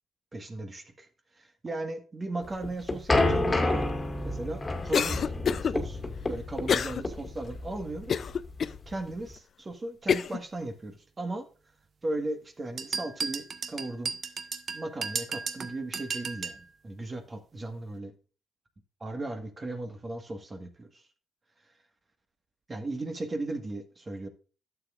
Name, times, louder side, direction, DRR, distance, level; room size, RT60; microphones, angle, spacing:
voice 1, 0.3-1.1 1.4-3.8 4.2-5.3 5.6-6.0 6.3-8.3 8.9-11.5 12.0-14.1 14.7-18.1 19.0-21.0 22.7-24.3, right 2 dB, 30° right, 6 dB, 1.6 m, -37 dB
sound 1, 2.4-9.3, left 2 dB, 25° left, 2.0 m, -29 dB
Cough, 4.9-5.7 6.7-7.0 7.5-7.6 8.1-8.8 9.4-9.5 10.1-10.4, left 7 dB, 55° left, 0.5 m, -27 dB
sound 2, 12.8-16.6, right 5 dB, 50° right, 0.9 m, -34 dB
11.5 x 7.4 x 2.5 m, 0.37 s
supercardioid pair, 55°, 0 cm